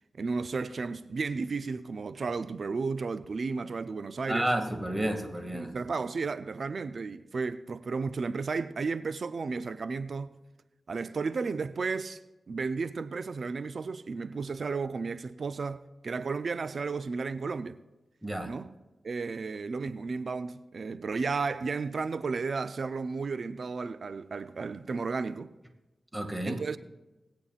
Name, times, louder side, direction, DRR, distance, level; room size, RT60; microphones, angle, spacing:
voice 1, 0.1-4.5 5.5-10.4 10.9-12.2 12.5-17.8 18.4-18.7 19.0-25.5 26.5-26.8, right 4 dB, 70° right, 0.4 m, -33 dB
voice 2, 4.3-5.7 18.2-18.5 26.1-26.6, right 1 dB, 15° right, 2.0 m, -31 dB
23.0 x 8.5 x 2.4 m
cardioid pair, 45°, 0 cm